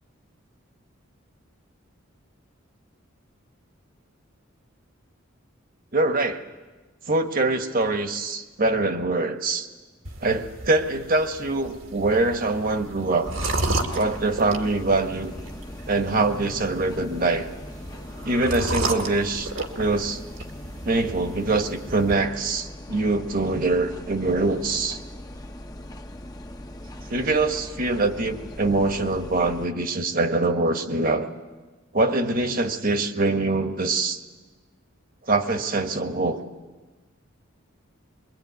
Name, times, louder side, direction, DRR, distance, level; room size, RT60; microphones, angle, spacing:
voice 1, 5.9-6.4 7.1-9.7 10.2-13.3 13.9-15.3 15.9-17.5 18.2-19.5 19.8-20.2 20.8-25.0 27.1-31.3 31.9-34.2 35.3-36.4, right 2 dB, 45° right, 7 dB, 1.4 m, -24 dB
sound 1, 10.1-22.1, right 2 dB, 75° right, 2.2 m, -33 dB
sound 2, 13.2-29.7, left 1 dB, 20° left, 0.9 m, -40 dB
24.0 x 22.5 x 9.6 m, 1.3 s
head